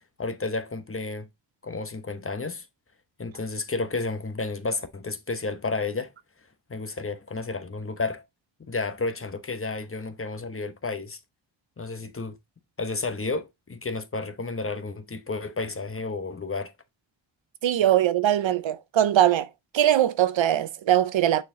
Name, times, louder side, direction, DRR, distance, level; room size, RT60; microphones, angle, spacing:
voice 1, 0.2-1.3 1.6-2.7 3.2-6.1 6.7-8.2 8.7-11.2 11.8-12.4 12.8-16.7, left 3 dB, 30° left, 0.9 m, -31 dB
voice 2, 17.6-19.5 19.7-21.4, right 11 dB, 80° right, 0.7 m, -21 dB
6.4 x 4.4 x 3.7 m
cardioid pair, 80°, 46 cm